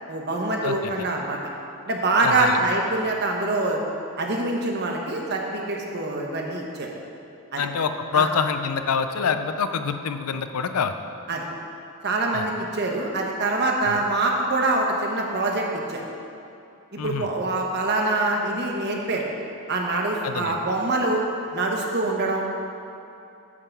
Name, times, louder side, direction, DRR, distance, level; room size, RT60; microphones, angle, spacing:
voice 1, 0.1-1.4 1.9-3.8 4.2-6.9 7.5-7.7 8.1-8.3 11.3-11.5 12.0-16.0 16.9-19.2 19.7-21.2 21.5-22.4, right 2 dB, 50° right, 0 dB, 1.1 m, -25 dB
voice 2, 0.6-1.1 2.2-2.6 7.6-10.9 12.3-12.5 13.9-14.0 17.0-17.3 20.2-20.6, left 6 dB, 80° left, 9 dB, 0.5 m, -26 dB
9.7 x 3.8 x 6.9 m, 2.7 s
head